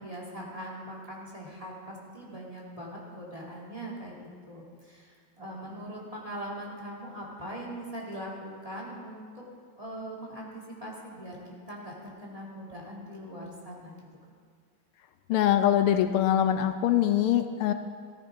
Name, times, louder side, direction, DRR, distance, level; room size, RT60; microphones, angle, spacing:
voice 1, 0.0-4.1 4.4-9.4 9.8-11.4 11.7-14.0, right 1 dB, 15° right, -3 dB, 2.1 m, -41 dB
voice 2, 15.3-17.7, left 11 dB, 80° left, 9 dB, 1.5 m, -23 dB
14.5 x 14.0 x 3.6 m, 2.1 s
omnidirectional pair, 2.4 m